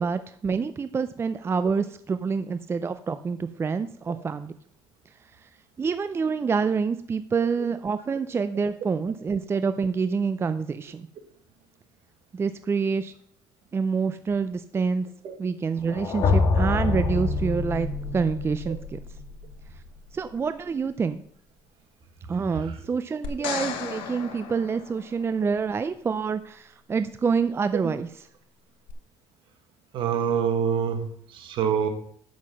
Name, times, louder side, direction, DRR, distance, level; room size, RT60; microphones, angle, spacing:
voice 1, 0.0-4.5 5.8-11.1 12.3-13.1 13.7-15.1 15.4-19.0 20.1-21.2 22.3-28.3, right 5 dB, 25° right, 11 dB, 0.4 m, -27 dB
sound 1, 15.9-19.9, left 3 dB, 55° left, 2.4 m, -26 dB
sound 2, 23.2-25.5 28.9-29.0, left 8 dB, 80° left, 1.2 m, -35 dB
voice 2, 29.9-31.0 31.3-31.9, right 7 dB, 65° right, 5 dB, 1.7 m, -25 dB
7.6 x 6.2 x 6.1 m, 0.62 s
cardioid pair, 95°, 9 cm